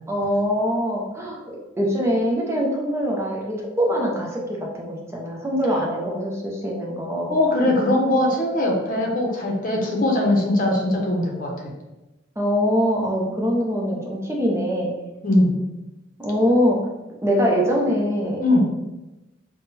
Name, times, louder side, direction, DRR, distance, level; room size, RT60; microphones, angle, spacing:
voice 1, 0.1-7.3 12.4-14.9 16.2-16.8 17.2-18.4, equal, 15° right, -2 dB, 0.7 m, -23 dB
voice 2, 7.3-11.5 15.2-15.6 18.4-18.6, left 1 dB, 45° left, 0 dB, 0.8 m, -20 dB
3.6 x 2.2 x 4.1 m, 1.0 s
head